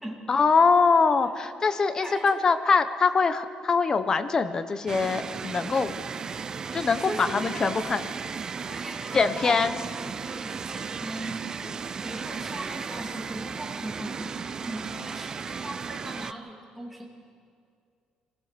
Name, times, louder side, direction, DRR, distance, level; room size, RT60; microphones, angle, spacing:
voice 1, 0.3-5.9 6.3-6.4 6.7-8.0 9.1-9.8, left 4 dB, 30° left, 11 dB, 0.9 m, -23 dB
voice 2, 2.0-2.4 6.9-7.9 8.5-9.7 10.0-17.1, right 1 dB, 5° right, -2 dB, 2.6 m, -39 dB
sound 1, 4.9-16.3, right 6 dB, 30° right, 0.4 m, -35 dB
26.0 x 16.0 x 6.8 m, 2.3 s
cardioid pair, 150°, 2 cm